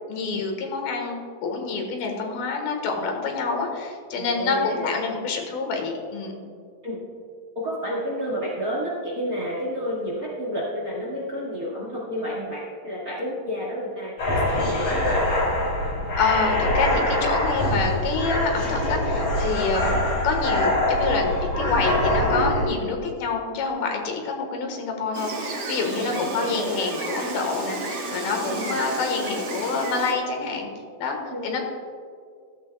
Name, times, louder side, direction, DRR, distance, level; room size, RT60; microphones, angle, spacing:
voice 1, 0.1-6.4 16.2-30.7 31.0-31.2 31.4-31.6, left 4 dB, 85° left, 2 dB, 3.3 m, -27 dB
voice 2, 4.1-5.0 6.8-7.0 7.5-15.4 19.7-20.0 25.9-26.9 28.5-28.8 31.3-31.6, equal, 35° right, -4 dB, 1.6 m, -31 dB
sound 1, 14.2-22.6, left 1 dB, 50° left, 4.5 m, -24 dB
Gull seagull, 25.1-30.1, right 2 dB, 65° right, 1.0 m, -32 dB
14.5 x 14.5 x 2.3 m, 2.3 s
omnidirectional pair, 4.2 m